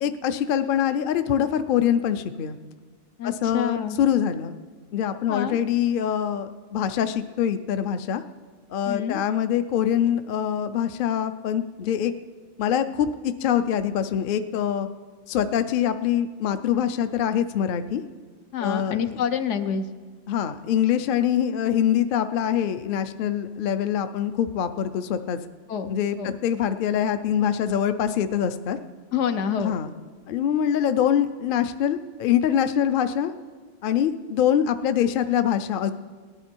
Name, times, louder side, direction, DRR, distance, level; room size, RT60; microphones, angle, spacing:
voice 1, 0.0-2.6 3.2-4.5 4.9-8.2 8.7-12.1 12.6-14.9 15.3-18.0 18.6-19.0 20.3-25.4 25.9-28.8 29.6-29.9 30.3-33.3 33.8-35.9, left 9 dB, 60° left, 11 dB, 0.6 m, -24 dB
voice 2, 3.2-4.0 5.3-5.6 8.8-9.2 18.5-19.8 25.7-25.9 26.2-26.4 29.1-29.7, left 8 dB, 75° left, 9 dB, 1.0 m, -27 dB
18.0 x 11.0 x 4.5 m, 1.5 s
omnidirectional pair, 1.3 m